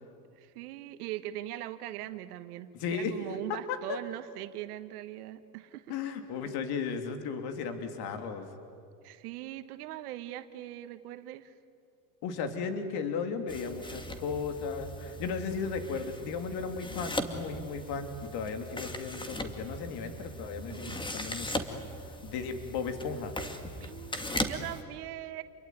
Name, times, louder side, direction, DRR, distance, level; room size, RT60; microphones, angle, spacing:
voice 1, 0.4-6.0 9.0-11.5 20.7-21.0 23.8-25.4, right 14 dB, 80° right, 11 dB, 1.5 m, -41 dB
voice 2, 2.7-3.1 3.5-4.0 5.9-8.5 12.2-21.6 22.2-23.4, left 5 dB, 55° left, 7 dB, 3.3 m, -35 dB
sound 1, 13.5-24.8, left 1 dB, 10° left, 2.1 m, -39 dB
28.5 x 22.0 x 9.5 m, 2.5 s
supercardioid pair, 115°, 45 cm